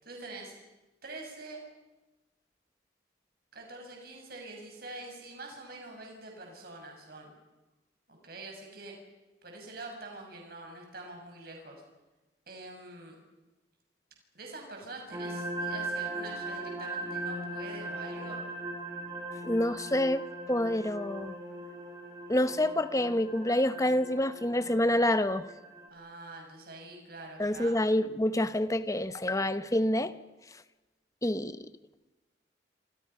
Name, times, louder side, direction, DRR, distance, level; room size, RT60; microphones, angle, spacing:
voice 1, 0.0-0.5 1.0-1.6 3.5-7.3 8.1-8.9 9.4-11.8 12.5-13.2 14.3-18.4 25.9-27.8, right 2 dB, 55° right, 6.2 m, -45 dB
sound 1, 15.1-25.9, right 2 dB, 25° right, 5.2 m, -39 dB
voice 2, 19.4-21.3 22.3-25.5 27.4-30.2 31.2-31.7, left 1 dB, 20° left, 1.0 m, -27 dB
28.0 x 25.5 x 5.7 m
head